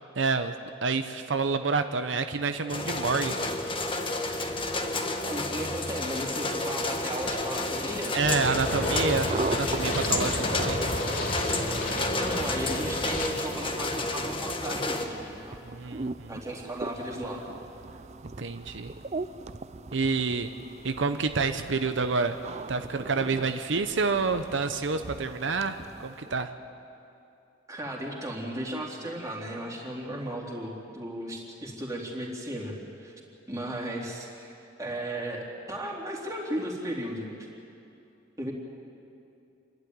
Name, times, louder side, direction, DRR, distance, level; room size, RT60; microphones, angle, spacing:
voice 1, 0.2-0.5 0.8-3.5 8.1-10.8 15.6-16.3 18.4-18.9 19.9-20.5 20.8-22.4 22.7-26.5, right 4 dB, 80° right, 8 dB, 0.8 m, -28 dB
sound 1, 2.7-15.1, left 2 dB, 30° left, 1.5 m, -31 dB
voice 2, 5.2-8.2 12.1-15.6 16.3-17.4 27.7-33.1 33.5-34.5 34.8-37.3 38.4-38.5, right 1 dB, 15° right, -2 dB, 3.2 m, -35 dB
sound 2, 7.1-26.5, right 3 dB, 35° right, 0.5 m, -41 dB
sound 3, 8.2-13.3, left 1 dB, 50° left, 3.0 m, -31 dB
27.5 x 12.0 x 9.5 m, 2.7 s
head